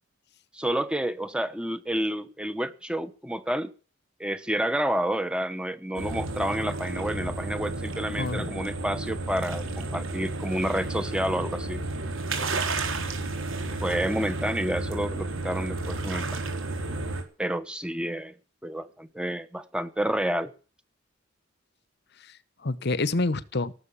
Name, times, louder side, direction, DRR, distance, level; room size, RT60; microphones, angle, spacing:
voice 1, 0.5-3.7 4.2-11.8 13.8-16.3 17.4-18.3 18.6-20.5, right 1 dB, 5° right, 12 dB, 1.1 m, -29 dB
sound 1, 5.9-17.2, right 3 dB, 70° right, 4.0 m, -32 dB
voice 2, 8.2-8.5 22.2-23.7, left 3 dB, 55° left, 17 dB, 1.0 m, -28 dB
18.0 x 7.8 x 8.6 m, 0.38 s
head